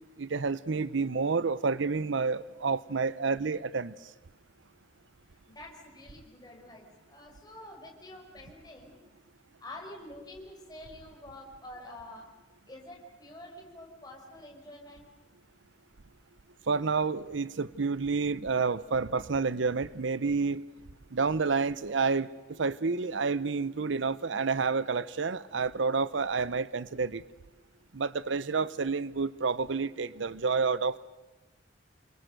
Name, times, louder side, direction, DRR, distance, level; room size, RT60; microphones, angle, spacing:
voice 1, 0.2-3.9 16.7-20.6 21.1-27.2 27.9-31.0, right 4 dB, 75° right, 18 dB, 0.7 m, -29 dB
voice 2, 5.5-9.0 9.6-12.2 12.7-15.1, left 1 dB, 20° left, 1 dB, 5.2 m, -47 dB
28.5 x 23.0 x 6.7 m, 1.1 s
head